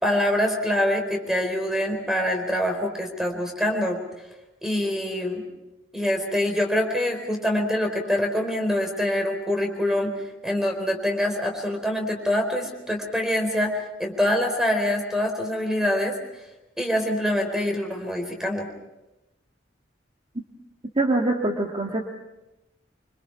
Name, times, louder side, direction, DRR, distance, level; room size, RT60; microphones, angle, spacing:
voice 1, 0.0-4.0 4.6-5.4 5.9-10.1 10.4-16.2 16.8-18.7, left 1 dB, 5° right, 3 dB, 4.3 m, -25 dB
voice 2, 21.0-22.0, right 2 dB, 30° right, 1 dB, 1.9 m, -23 dB
26.5 x 25.0 x 5.8 m, 0.97 s
head